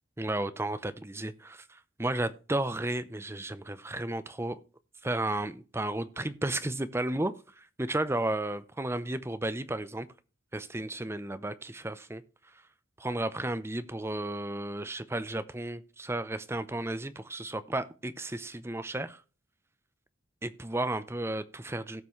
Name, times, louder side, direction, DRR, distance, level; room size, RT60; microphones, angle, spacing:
voice 1, 0.2-4.6 5.0-10.1 10.5-12.2 13.0-19.2 20.4-22.0, right 1 dB, 15° right, 0.6 m, -33 dB
17.5 x 6.0 x 3.1 m
head